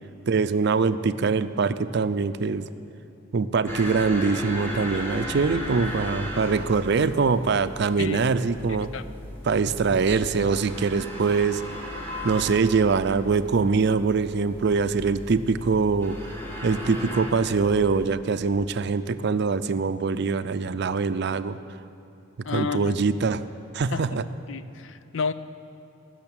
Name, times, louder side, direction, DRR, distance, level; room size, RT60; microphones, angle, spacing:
voice 1, 0.3-2.6 3.3-8.9 9.5-11.6 12.2-16.2 16.6-21.6 22.5-23.4 23.7-24.2, right 4 dB, 60° right, 12 dB, 0.5 m, -23 dB
sound 1, 3.6-18.1, left 1 dB, 10° left, 1.9 m, -36 dB
voice 2, 8.7-9.0 22.4-23.0 23.9-24.0 24.5-25.3, left 5 dB, 75° left, 13 dB, 0.5 m, -30 dB
16.0 x 6.5 x 8.8 m, 3.0 s
head